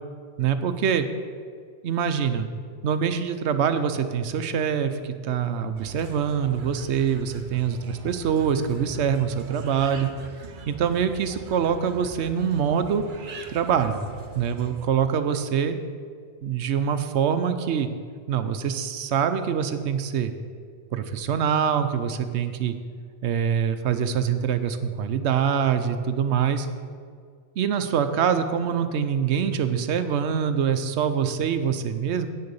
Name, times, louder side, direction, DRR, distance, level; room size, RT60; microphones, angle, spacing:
voice 1, 0.4-1.1 1.8-2.5 2.8-10.1 10.7-13.0 13.5-14.0 14.3-15.8 16.4-17.9 18.3-20.3 20.9-22.8 23.2-26.7 27.6-32.3, right 7 dB, 85° right, 9 dB, 1.0 m, -24 dB
sound 1, 5.7-14.9, right 4 dB, 50° right, 0.9 m, -42 dB
8.8 x 6.6 x 6.9 m, 2.1 s
omnidirectional pair, 1.1 m